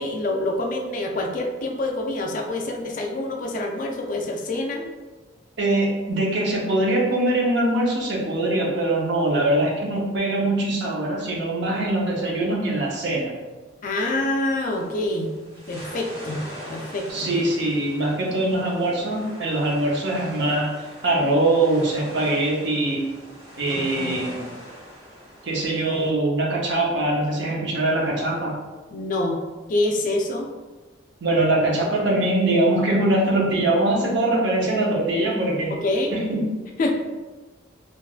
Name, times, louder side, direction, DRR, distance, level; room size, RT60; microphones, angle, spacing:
voice 1, 0.0-4.9 13.8-15.3 15.7-16.4 16.7-17.3 23.7-24.2 28.9-29.4 29.7-30.5 35.8-36.2 36.8-36.9, left 2 dB, 45° left, 2 dB, 0.4 m, -26 dB
voice 2, 5.6-13.3 17.1-20.7 21.0-23.1 23.6-24.4 25.4-28.6 31.2-35.7 36.1-36.5, right 1 dB, 65° right, -2 dB, 0.7 m, -22 dB
sound 1, 14.7-26.1, equal, 30° right, 1.3 m, -41 dB
3.4 x 2.4 x 2.3 m, 1.3 s
head